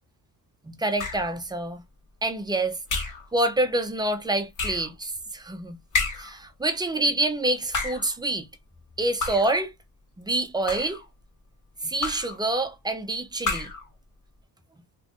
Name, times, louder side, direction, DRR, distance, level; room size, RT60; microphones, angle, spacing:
voice 1, 0.6-1.8 2.2-2.8 3.3-5.8 6.2-8.5 9.0-9.7 10.2-11.0 11.8-13.7, right 2 dB, 10° right, 0.5 m, -27 dB
sound 1, 1.0-1.4 2.9-3.3 4.6-4.9 5.9-6.4 7.6-8.1 9.2-9.6 10.5-11.1 12.0-12.4 13.4-13.9, left 3 dB, 60° left, 1.2 m, -30 dB
2.5 x 2.5 x 3.5 m
cardioid pair, 120°, 36 cm